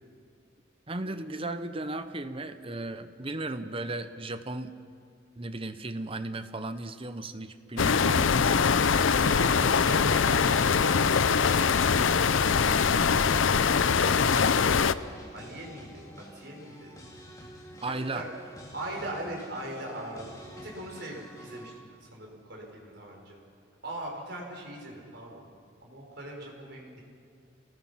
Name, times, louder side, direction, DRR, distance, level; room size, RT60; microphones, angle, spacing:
voice 1, 0.9-4.7 5.4-8.6 17.8-18.3, right 2 dB, 30° right, 10 dB, 0.9 m, -35 dB
sound 1, 7.8-14.9, left 6 dB, 80° left, 0.6 m, -23 dB
voice 2, 8.7-11.0 11.4-14.5 15.3-17.0 17.8-18.3 18.7-21.7 22.0-23.4 23.8-25.5 25.8-27.0, right 1 dB, 55° right, -1 dB, 5.4 m, -41 dB
sound 2, 8.9-21.8, equal, 20° left, 2.7 m, -48 dB
28.5 x 19.0 x 5.9 m, 2.3 s
head